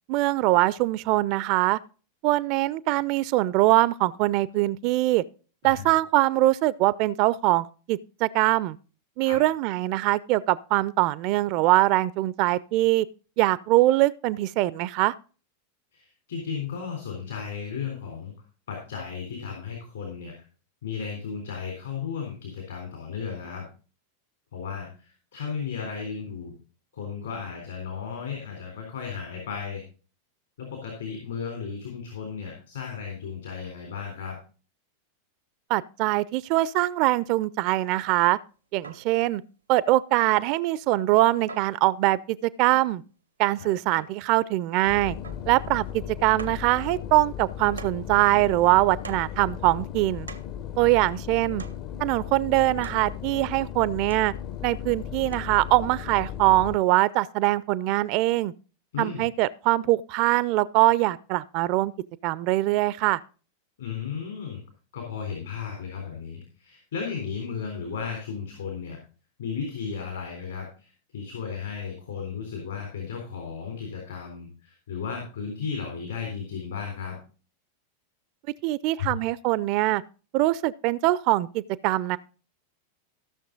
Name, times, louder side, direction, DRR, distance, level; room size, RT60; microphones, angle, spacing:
voice 1, 0.1-1.8 2.2-5.2 5.6-8.8 9.2-13.1 13.4-15.1 35.7-38.4 38.7-39.4 39.7-43.0 43.4-45.2 45.5-50.3 50.8-51.6 52.0-54.3 54.6-58.5 59.0-61.9 62.2-63.2 78.6-80.0 80.3-82.2, right 17 dB, 45° right, 0.4 m, -23 dB
voice 2, 15.9-18.3 18.7-20.4 20.8-23.7 24.5-26.5 26.9-29.8 30.6-34.4 43.6-43.7 50.8-50.9 58.9-59.2 63.8-64.6 64.9-69.0 69.4-77.2, left 6 dB, 65° left, 3.5 m, -35 dB
sound 1, 38.8-39.2 40.2-40.5 41.5-41.8 42.7-43.1 44.0-44.3 45.2-45.6 45.9-46.0 46.4-46.7 47.8-48.1 49.0-49.4 50.3-50.6 51.6-51.9 52.8-53.1 54.1-54.4 55.3-55.4, right 4 dB, 80° right, 0.7 m, -43 dB
sound 2, 44.9-56.8, left 10 dB, 40° left, 0.7 m, -36 dB
15.0 x 6.5 x 3.8 m
figure-of-eight pair, 90°, 0 cm